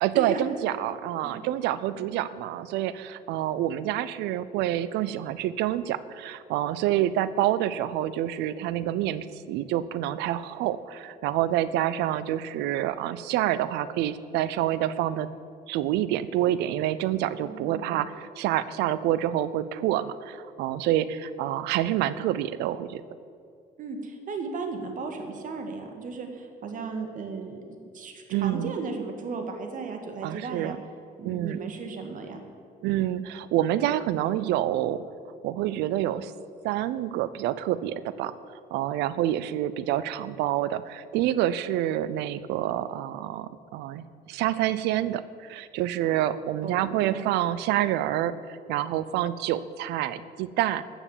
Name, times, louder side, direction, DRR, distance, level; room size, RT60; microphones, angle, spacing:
voice 1, 0.0-15.3 15.7-23.0 28.3-28.7 30.2-30.8 31.2-31.6 32.8-35.0 35.4-36.3 36.6-38.3 38.7-50.8, right 12 dB, 90° right, 16 dB, 0.6 m, -27 dB
voice 2, 17.4-18.0 23.8-30.8 31.2-32.4 46.6-47.4, right 4 dB, 50° right, 5 dB, 1.9 m, -35 dB
13.5 x 7.2 x 7.3 m, 2.4 s
cardioid pair, 110°, 17 cm